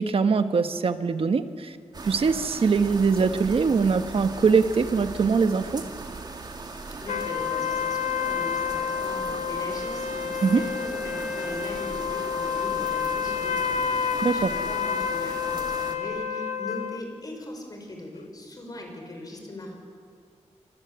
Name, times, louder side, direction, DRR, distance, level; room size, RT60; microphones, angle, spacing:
voice 1, 0.0-1.8 2.0-5.8 10.4-10.6 14.2-14.5, right 5 dB, 50° right, 9 dB, 1.3 m, -22 dB
sound 1, 1.9-16.0, right 3 dB, 35° right, 2.6 m, -39 dB
voice 2, 7.0-19.7, left 1 dB, 30° left, 2 dB, 5.6 m, -39 dB
sound 2, 7.1-17.0, left 7 dB, 90° left, 1.3 m, -29 dB
28.0 x 26.0 x 8.1 m, 2.2 s
wide cardioid pair, 165°, 12 cm